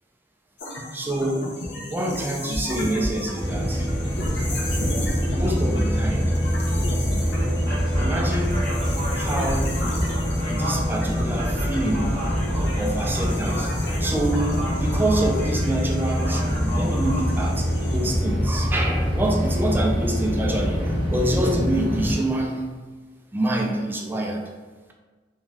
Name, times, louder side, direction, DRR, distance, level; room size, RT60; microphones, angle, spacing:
sound 1, 0.6-18.1, left 1 dB, 80° left, 0.6 m, -34 dB
voice 1, 0.9-1.5 1.9-3.9 5.3-6.3 7.2-7.6 8.0-8.7 9.2-10.0 10.5-12.2 12.5-17.6 17.9-22.7 23.3-24.4, right 1 dB, 10° right, 1 dB, 0.3 m, -26 dB
sound 2, 3.4-22.2, equal, 30° right, 0.8 m, -24 dB
2.6 x 2.2 x 3.1 m, 1.3 s
head